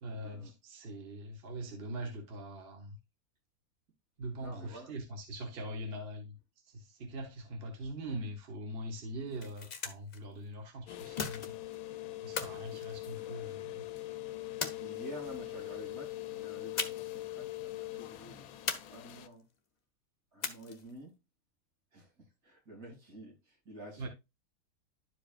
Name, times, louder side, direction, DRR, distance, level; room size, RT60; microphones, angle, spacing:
voice 1, 0.0-3.0 4.2-6.4 6.6-11.5 12.2-13.8 24.0-24.1, right 1 dB, 45° right, 1.3 m, -42 dB
voice 2, 4.4-4.9 14.6-18.4 18.9-19.4 20.3-21.1 21.9-22.1 22.4-24.1, right 1 dB, 75° right, 3.7 m, -49 dB
sound 1, 9.2-10.2 11.2-11.8 12.4-13.6 14.6-15.4 16.8-17.2 17.5-17.6 18.7-19.4 20.4-21.0, left 5 dB, 40° left, 0.7 m, -39 dB
sound 2, 10.9-19.3, left 16 dB, 75° left, 1.0 m, -42 dB
11.5 x 4.9 x 2.4 m
omnidirectional pair, 1.6 m